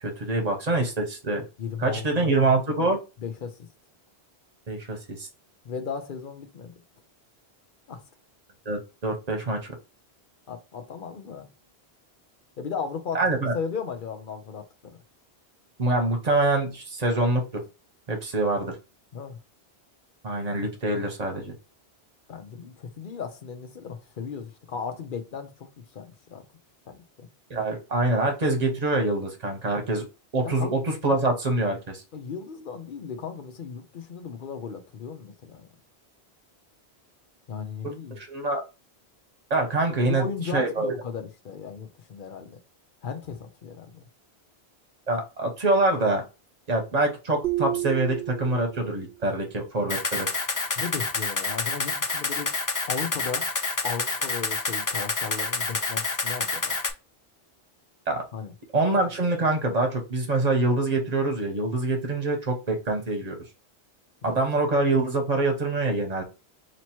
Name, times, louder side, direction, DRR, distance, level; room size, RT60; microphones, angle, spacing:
voice 1, 0.0-1.4 1.8-3.0 4.7-5.3 8.6-9.7 13.1-13.5 15.8-17.5 18.1-18.7 20.2-21.5 27.5-30.0 30.3-32.0 38.1-38.6 39.5-40.3 40.5-40.9 45.1-46.2 46.7-50.3 58.1-58.2 58.7-63.4 64.2-66.2, right 2 dB, 40° right, 1.1 m, -25 dB
voice 2, 1.6-2.3 3.2-3.6 5.6-6.7 7.9-8.0 10.5-11.5 12.6-13.2 13.5-15.0 19.1-19.4 22.3-26.4 26.9-27.3 30.4-30.7 32.1-35.7 37.5-38.2 39.9-42.6 43.0-44.1 50.8-52.5 52.9-53.4 53.8-56.7 58.3-58.5 64.2-64.4, left 6 dB, 55° left, 0.8 m, -36 dB
sound 1, 47.4-49.1, right 16 dB, 65° right, 0.8 m, -31 dB
Camera, 49.9-56.9, left 3 dB, 25° left, 0.4 m, -28 dB
3.0 x 2.9 x 4.3 m
omnidirectional pair, 1.1 m